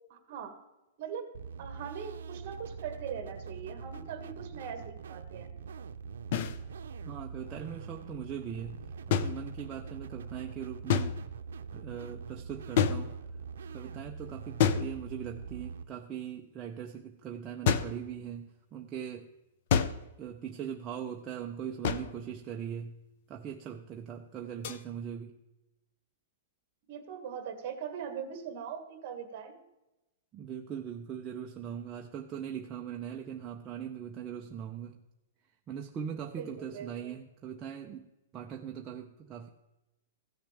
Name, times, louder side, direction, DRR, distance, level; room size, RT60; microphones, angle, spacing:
voice 1, 0.1-0.5 1.0-1.3 1.6-5.5 26.9-29.6 36.4-37.1, right 7 dB, 40° right, 6 dB, 1.7 m, -41 dB
sound 1, 1.3-15.8, right 6 dB, 85° right, 0.6 m, -44 dB
sound 2, 6.3-6.6 9.1-9.9 10.9-11.5 12.8-13.5 14.6-15.4 17.7-18.1 19.7-20.2 21.8-22.3 24.6-24.8, left 7 dB, 45° left, 0.6 m, -29 dB
voice 2, 7.0-8.8 9.1-11.2 11.7-13.2 13.7-19.3 20.2-22.9 23.3-25.4 30.3-35.0 35.7-38.1 38.3-39.5, right 8 dB, 20° right, 1 dB, 0.5 m, -40 dB
15.5 x 6.5 x 3.3 m, 0.98 s
hypercardioid pair, 170°, 0 cm